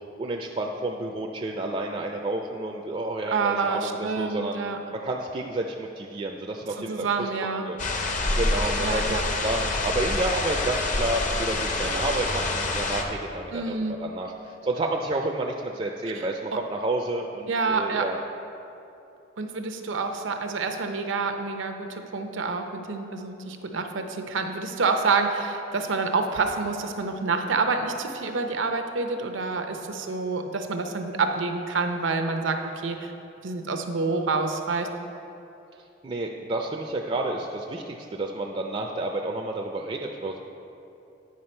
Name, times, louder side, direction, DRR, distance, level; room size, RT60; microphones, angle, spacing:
voice 1, 0.2-4.6 4.9-7.8 8.1-13.7 14.0-18.2 36.0-40.4, right 2 dB, 30° right, 2 dB, 0.4 m, -30 dB
voice 2, 3.3-4.8 6.8-7.6 8.8-9.2 13.5-13.9 16.1-16.2 17.5-18.1 19.4-33.1 33.4-34.9, right 4 dB, 85° right, 5 dB, 0.7 m, -27 dB
sound 1, 7.8-13.0, left 2 dB, 40° left, 0.7 m, -27 dB
9.5 x 5.8 x 4.3 m, 2.8 s
head